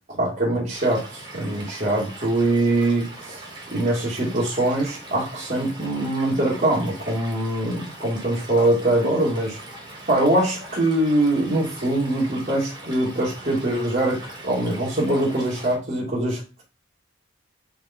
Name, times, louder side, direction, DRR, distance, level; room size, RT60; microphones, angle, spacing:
voice 1, 0.2-3.4 3.7-9.6 10.1-16.6, right 1 dB, 40° right, -7 dB, 2.5 m, -23 dB
Stream / Liquid, 0.7-15.7, right 2 dB, 25° right, 2.3 m, -41 dB
5.3 x 4.9 x 4.4 m, 0.31 s
head